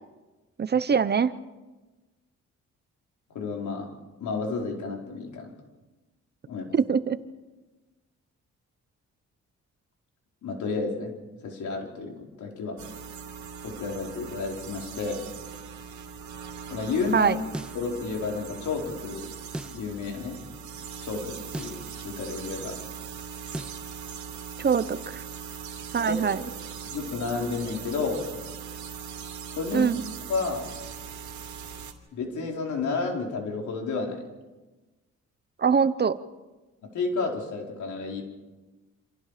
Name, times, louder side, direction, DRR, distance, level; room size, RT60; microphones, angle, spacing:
voice 1, 0.6-1.3 6.7-7.2 17.1-17.4 24.6-25.2 25.9-26.4 29.7-30.0 35.6-36.2, right 6 dB, 35° right, 15 dB, 0.8 m, -23 dB
voice 2, 3.3-3.9 4.2-5.5 6.5-6.6 10.4-11.1 11.4-12.8 13.6-15.2 16.7-17.3 17.7-19.2 19.7-20.4 21.0-22.8 26.1-26.4 26.9-28.2 29.6-29.9 30.3-30.6 32.1-34.2 36.9-38.2, left 4 dB, 85° left, 1 dB, 4.7 m, -31 dB
sound 1, 12.8-31.9, right 6 dB, 80° right, 2.8 m, -40 dB
sound 2, 17.5-17.8 19.5-19.8 21.5-21.8 23.5-23.8, equal, 5° right, 0.7 m, -36 dB
28.0 x 26.5 x 5.1 m, 1.2 s
cardioid pair, 120°, 29 cm